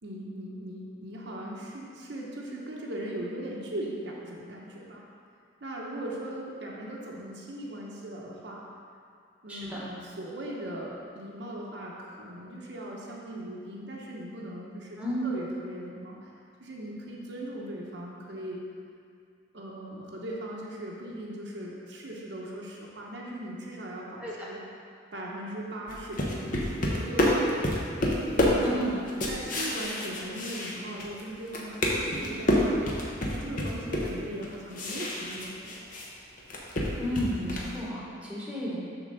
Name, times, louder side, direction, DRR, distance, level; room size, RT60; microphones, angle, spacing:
voice 1, 0.0-5.0 5.6-8.6 9.4-16.3 16.6-18.6 19.5-24.6 25.1-27.5 28.3-28.7 29.1-32.8 33.3-35.7, right 1 dB, 60° right, -3 dB, 0.8 m, -39 dB
voice 2, 9.5-9.8 15.0-15.3 24.2-24.5 28.6-29.0 37.0-38.8, equal, 5° right, -6 dB, 1.3 m, -32 dB
sound 1, 25.9-31.2 31.5-36.1 36.4-37.8, left 1 dB, 45° left, 0.9 m, -28 dB
6.7 x 3.7 x 6.3 m, 2.3 s
head